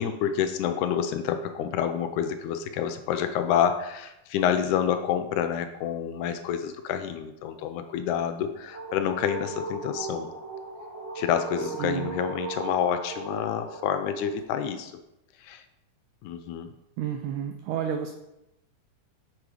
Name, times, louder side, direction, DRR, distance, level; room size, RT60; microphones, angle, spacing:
voice 1, 0.0-10.3 11.2-14.9 15.4-15.6 16.2-16.7, left 9 dB, 80° left, 8 dB, 1.8 m, -28 dB
sound 1, 8.3-14.4, right 4 dB, 55° right, 0.7 m, -38 dB
voice 2, 11.8-12.1 17.0-18.1, right 9 dB, 80° right, 6 dB, 1.9 m, -30 dB
6.0 x 4.9 x 4.8 m, 0.90 s
omnidirectional pair, 3.7 m